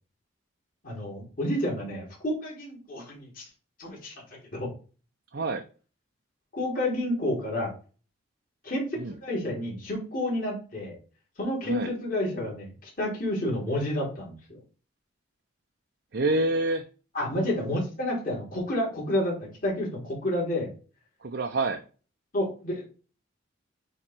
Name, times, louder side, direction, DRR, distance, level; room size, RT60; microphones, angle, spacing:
voice 1, 0.8-3.4 3.8-4.1 4.5-4.7 6.5-7.7 8.6-10.9 11.4-14.6 17.1-20.7 22.3-22.9, left 1 dB, 45° left, 3.4 m, -30 dB
voice 2, 5.3-5.6 9.0-9.1 11.7-11.9 16.1-16.9 21.2-21.8, right 2 dB, 55° right, 0.6 m, -27 dB
8.8 x 3.2 x 4.4 m
head